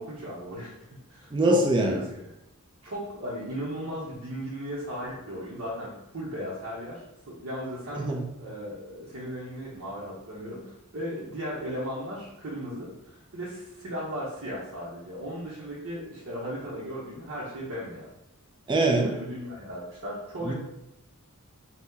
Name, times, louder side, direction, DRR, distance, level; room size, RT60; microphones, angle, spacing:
voice 1, 0.0-2.3 2.8-8.1 8.4-18.1 19.0-20.5, equal, 60° right, -8 dB, 0.8 m, -36 dB
voice 2, 1.3-2.0 8.0-8.2 18.7-19.2 20.5-20.6, right 1 dB, 20° right, 1 dB, 0.3 m, -23 dB
2.8 x 2.1 x 3.5 m, 0.87 s
head